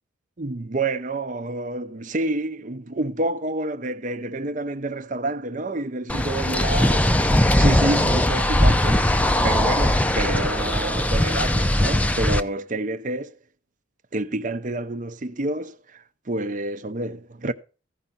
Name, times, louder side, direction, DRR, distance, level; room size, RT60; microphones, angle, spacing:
voice 1, 0.4-13.4 14.1-17.5, right 2 dB, 40° right, 0.7 m, -28 dB
sound 1, 6.1-12.4, left 1 dB, 5° left, 0.5 m, -20 dB
15.5 x 5.3 x 7.2 m
head